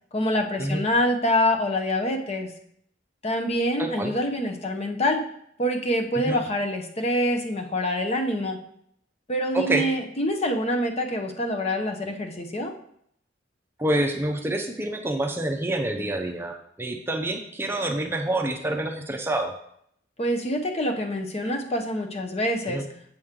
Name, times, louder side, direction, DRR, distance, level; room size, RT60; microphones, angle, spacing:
voice 1, 0.1-2.5 3.2-5.2 5.6-8.6 9.3-12.7 20.2-22.8, left 1 dB, 35° left, 4 dB, 0.8 m, -26 dB
voice 2, 3.8-4.1 6.2-6.4 9.5-9.9 13.8-19.5 22.7-22.8, right 1 dB, 15° right, 3 dB, 0.6 m, -27 dB
7.7 x 6.2 x 3.7 m, 0.70 s
head